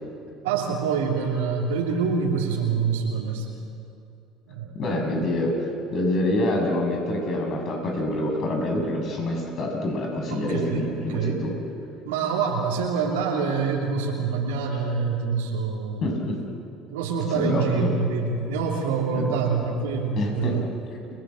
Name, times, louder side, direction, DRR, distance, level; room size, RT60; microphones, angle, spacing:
voice 1, 0.4-3.6 4.5-4.7 10.3-11.4 12.0-16.0 16.9-20.6, right 5 dB, 80° right, -3 dB, 3.0 m, -26 dB
voice 2, 4.7-11.5 16.0-16.4 17.3-17.9 19.1-19.3 20.2-20.6, left 1 dB, 50° left, 2 dB, 6.9 m, -26 dB
30.0 x 19.0 x 7.7 m, 2.6 s
hypercardioid pair, 70°, 0 cm